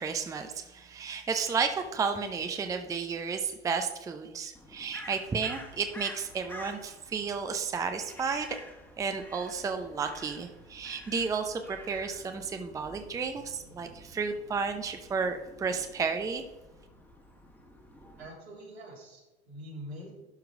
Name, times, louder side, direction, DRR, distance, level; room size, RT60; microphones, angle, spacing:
voice 1, 0.0-8.6 9.0-16.4, right 5 dB, 10° right, 7 dB, 0.6 m, -32 dB
Crow, 4.5-18.3, left 1 dB, 5° left, 1.5 m, -50 dB
voice 2, 18.2-20.2, equal, 75° right, -3 dB, 3.3 m, -45 dB
11.5 x 4.7 x 4.8 m, 1.1 s
figure-of-eight pair, 90°, 32 cm